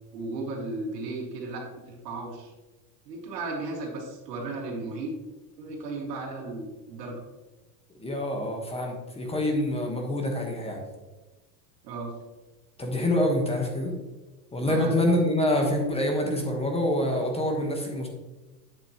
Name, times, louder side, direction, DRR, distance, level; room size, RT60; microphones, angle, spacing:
voice 1, 0.1-2.5 3.1-5.1 5.6-7.2 11.8-12.1 14.6-14.9, right 2 dB, 85° right, 0 dB, 2.3 m, -35 dB
voice 2, 8.0-10.8 12.8-13.9 14.5-18.1, left 1 dB, 10° left, 2 dB, 1.3 m, -26 dB
8.6 x 7.1 x 3.0 m, 1.1 s
supercardioid pair, 120°, 48 cm